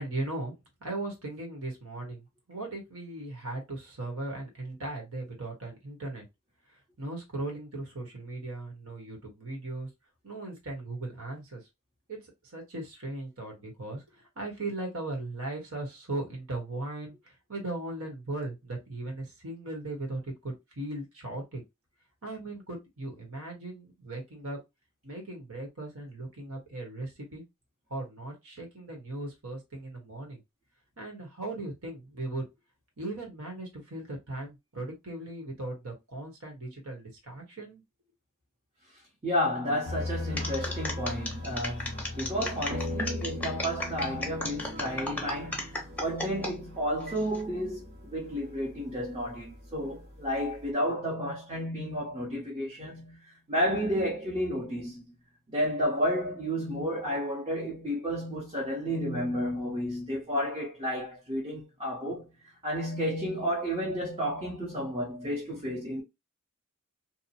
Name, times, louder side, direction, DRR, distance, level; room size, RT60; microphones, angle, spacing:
voice 1, 0.0-6.2 6.7-9.9 10.2-11.7 12.1-12.2 12.4-21.6 22.2-24.6 25.0-27.4 27.9-30.4 31.0-32.5 33.0-37.8, right 2 dB, 70° right, 1.2 m, -38 dB
voice 2, 39.2-55.0 55.5-62.3 62.6-66.0, equal, 25° right, 0.8 m, -31 dB
sound 1, 39.8-50.7, left 2 dB, 50° right, 0.9 m, -40 dB
sound 2, 40.4-46.5 47.0-47.4, left 2 dB, 5° left, 0.7 m, -35 dB
2.8 x 2.1 x 2.7 m
head